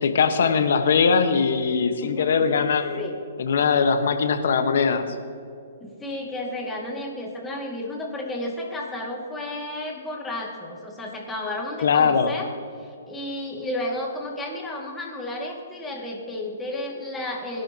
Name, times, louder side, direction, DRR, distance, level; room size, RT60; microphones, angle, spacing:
voice 1, 0.0-3.0 3.4-5.1 11.8-12.3, left 5 dB, 70° left, 8 dB, 1.3 m, -21 dB
voice 2, 2.0-2.6 3.0-3.2 5.8-12.5 12.8-17.6, left 1 dB, 10° left, -1 dB, 2.2 m, -32 dB
20.5 x 11.5 x 3.0 m, 2.5 s
hypercardioid pair, 145°, 0 cm